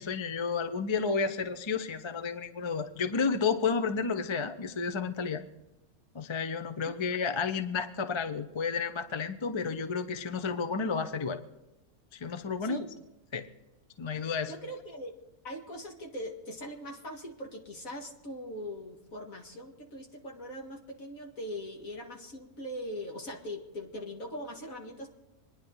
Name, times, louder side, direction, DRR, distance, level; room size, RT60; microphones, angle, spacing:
voice 1, 0.0-5.4 6.1-11.4 12.1-12.9 13.3-13.5 14.0-14.5, left 5 dB, 30° left, 9 dB, 0.5 m, -31 dB
voice 2, 14.5-15.1 15.4-25.1, equal, 60° left, 1 dB, 2.4 m, -41 dB
26.0 x 10.5 x 4.0 m, 0.98 s
omnidirectional pair, 1.6 m